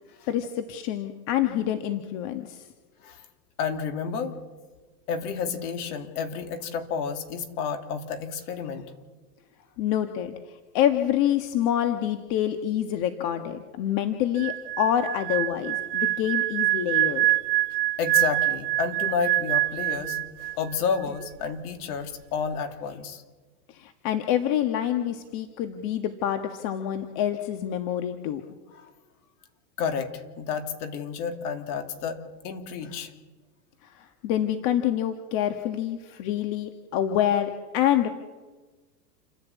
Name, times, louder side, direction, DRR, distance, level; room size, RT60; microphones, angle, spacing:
voice 1, 0.3-2.6 9.8-10.3 10.7-17.2 23.7-28.4 34.2-38.1, left 10 dB, 45° left, 6 dB, 1.6 m, -26 dB
voice 2, 3.6-4.4 5.1-8.9 18.0-23.2 28.7-28.9 29.8-33.1 36.3-36.4, left 6 dB, 60° left, 5 dB, 3.0 m, -31 dB
sound 1, 14.4-20.7 21.0-21.3, right 17 dB, 75° right, 0.7 m, -25 dB
29.0 x 11.0 x 8.4 m, 1.3 s
hypercardioid pair, 120°, 50 cm